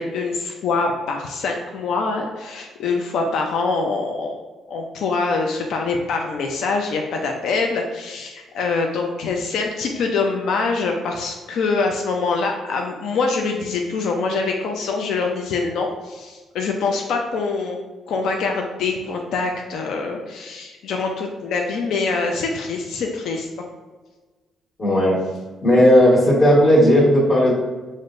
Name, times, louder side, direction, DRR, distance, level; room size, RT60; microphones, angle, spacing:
voice 1, 0.0-4.4 4.7-17.8 18.1-23.5, left 4 dB, 75° left, 2 dB, 0.4 m, -24 dB
voice 2, 24.8-25.2 25.6-27.5, equal, 45° left, -9 dB, 1.4 m, -14 dB
6.3 x 2.1 x 2.5 m, 1.3 s
cardioid pair, 90°, 0 cm